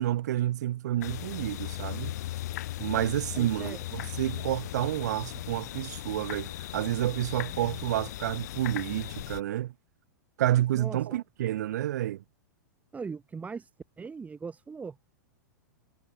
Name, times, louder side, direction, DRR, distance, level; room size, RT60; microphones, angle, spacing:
voice 1, 0.0-2.1 2.8-9.7 10.4-12.2, right 13 dB, 60° right, 0.6 m, -29 dB
sound 1, 1.0-9.4, left 15 dB, 60° left, 2.5 m, -37 dB
voice 2, 3.3-3.8 10.7-11.2 12.9-13.7 14.0-15.0, right 5 dB, 15° right, 2.6 m, -39 dB
figure-of-eight pair, 105°, 10 cm